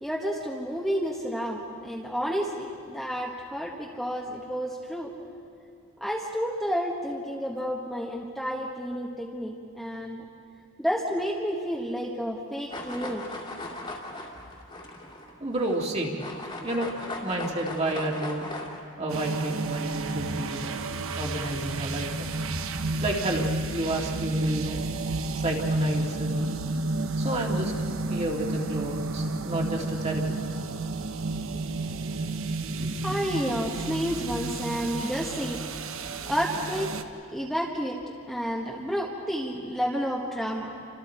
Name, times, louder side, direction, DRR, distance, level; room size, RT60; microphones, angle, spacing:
voice 1, 0.0-5.1 6.0-10.2 10.8-13.3 32.8-35.6 36.3-36.9 37.3-38.0 38.3-40.7, equal, ahead, -3 dB, 1.4 m, -30 dB
sound 1, 12.7-15.9 16.2-18.8, left 2 dB, 25° left, 2.3 m, -38 dB
voice 2, 15.4-16.2 16.6-16.9 17.2-18.5 19.0-20.8 21.2-22.3 23.0-24.8 25.3-26.6 27.2-27.7 28.1-30.2, right 1 dB, 30° right, 0 dB, 2.3 m, -30 dB
sound 2, 19.1-37.0, right 2 dB, 65° right, 1.0 m, -31 dB
sound 3, 20.1-25.4, equal, 85° right, 6.6 m, -41 dB
29.5 x 26.0 x 4.5 m, 2.4 s
head